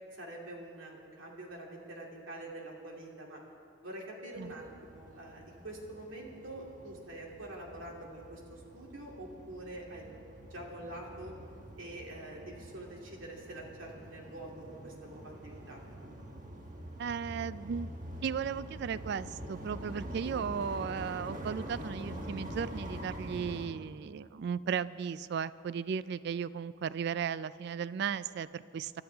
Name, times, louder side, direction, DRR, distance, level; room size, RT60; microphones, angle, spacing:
voice 1, 0.1-3.4 3.8-10.1 10.5-11.3 11.8-15.8, right 1 dB, 85° right, -1 dB, 2.7 m, -45 dB
sound 1, 4.3-23.7, right 1 dB, 40° right, 1.3 m, -45 dB
voice 2, 17.0-17.9 18.2-28.9, right 7 dB, 60° right, 17 dB, 0.3 m, -36 dB
24.0 x 13.0 x 3.5 m, 2.4 s
head